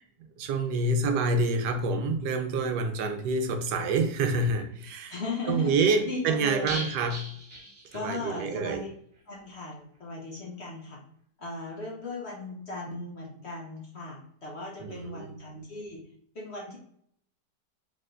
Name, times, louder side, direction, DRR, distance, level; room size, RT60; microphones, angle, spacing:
voice 1, 0.4-5.2 5.5-7.2 7.9-8.8 14.8-15.3, right 3 dB, 75° right, 6 dB, 1.2 m, -27 dB
voice 2, 5.1-5.7 6.1-6.8 7.9-8.9 9.3-11.0 11.4-16.0 16.3-16.8, left 3 dB, 50° left, -2 dB, 0.9 m, -37 dB
sound 1, 6.7-8.5 8.7-8.8 9.2-9.3, right 1 dB, 35° right, 0.9 m, -39 dB
4.7 x 3.4 x 2.5 m, 0.67 s
omnidirectional pair, 1.9 m